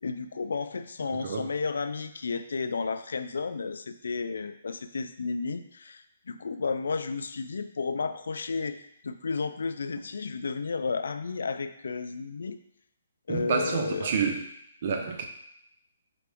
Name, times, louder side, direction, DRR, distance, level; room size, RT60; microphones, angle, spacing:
voice 1, 0.0-8.8 9.0-12.6 13.3-14.1, left 4 dB, 80° left, 10 dB, 0.3 m, -32 dB
voice 2, 13.3-14.4 14.8-15.2, right 6 dB, 50° right, 4 dB, 0.6 m, -28 dB
3.8 x 3.3 x 3.5 m, 0.75 s
hypercardioid pair, 155°, 0 cm